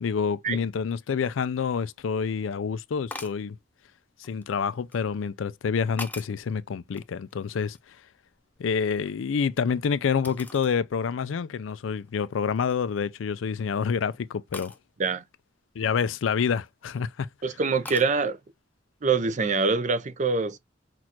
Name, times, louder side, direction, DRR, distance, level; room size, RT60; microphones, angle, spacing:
voice 1, 0.0-3.6 4.2-7.8 8.6-14.7 15.8-17.3, left 6 dB, 85° left, 0.4 m, -28 dB
sound 1, 3.1-3.5 4.2-5.0 5.6-6.5 6.9-8.0 8.3-9.6 10.2-10.8 11.3-11.4 12.0-12.2 12.6-13.0 14.5-14.8 16.5-17.0 17.8-18.1, left 2 dB, 10° left, 0.6 m, -42 dB
voice 2, 17.4-18.4 19.0-20.6, right 4 dB, 40° right, 0.5 m, -24 dB
6.1 x 2.4 x 2.9 m
head